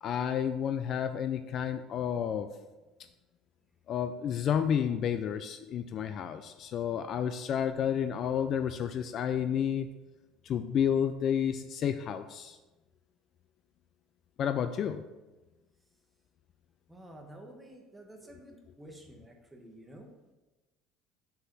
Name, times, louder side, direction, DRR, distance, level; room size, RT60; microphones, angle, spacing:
voice 1, 0.0-2.5 3.9-9.9 10.4-12.6 14.4-15.0, left 8 dB, 40° left, 10 dB, 0.3 m, -30 dB
voice 2, 16.9-20.3, right 1 dB, 10° right, 2 dB, 1.0 m, -51 dB
6.8 x 4.7 x 5.4 m, 1.1 s
cardioid pair, 160°, 0 cm